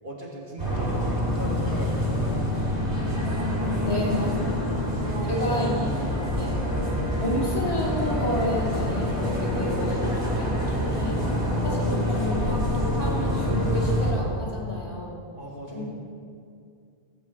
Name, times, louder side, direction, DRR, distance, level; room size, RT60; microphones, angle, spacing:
voice 1, 0.0-2.9 4.9-5.6 5.9-6.1 15.4-15.8, right 1 dB, 50° right, -3 dB, 2.2 m, -38 dB
sound 1, 0.6-14.1, left 1 dB, 80° right, 3.8 m, -26 dB
voice 2, 3.8-4.7 5.3-5.9 6.4-6.6 7.2-11.2 11.6-15.2 15.7-15.8, equal, 35° left, -5 dB, 2.8 m, -31 dB
16.0 x 5.7 x 7.7 m, 2.3 s
omnidirectional pair, 1.1 m